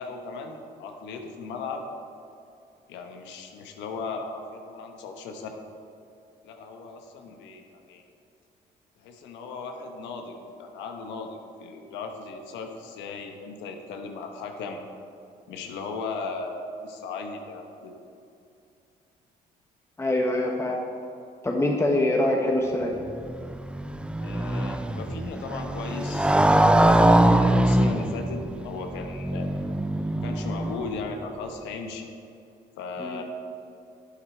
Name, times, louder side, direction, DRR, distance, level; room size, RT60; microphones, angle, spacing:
voice 1, 0.0-1.8 2.9-5.7 6.4-8.0 9.0-14.8 15.5-17.9 24.2-26.3 26.7-29.5 30.2-32.1 32.8-33.2, left 4 dB, 85° left, 4 dB, 1.1 m, -37 dB
voice 2, 20.0-20.8 21.4-23.0 33.0-33.2, left 1 dB, 15° left, 0 dB, 1.2 m, -24 dB
Motorcycle, 23.0-31.1, right 1 dB, 5° right, 0.4 m, -23 dB
11.0 x 8.2 x 4.4 m, 2.6 s
cardioid pair, 80°, 18 cm